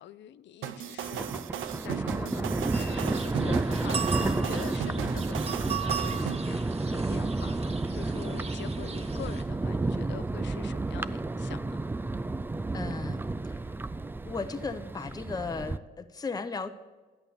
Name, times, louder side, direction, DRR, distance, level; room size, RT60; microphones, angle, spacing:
voice 1, 0.0-1.4 1.8-11.8, left 12 dB, 65° left, 0.5 m, -45 dB
sound 1, 0.6-6.4, right 11 dB, 85° right, 0.6 m, -36 dB
Thunder, 1.0-15.8, right 2 dB, 10° right, 0.3 m, -31 dB
sound 2, 2.7-9.4, right 6 dB, 30° right, 1.5 m, -38 dB
voice 2, 12.7-13.3 13.5-13.6 14.2-16.7, left 4 dB, 20° left, 0.7 m, -35 dB
11.0 x 8.7 x 6.9 m
cardioid pair, 90°, 20 cm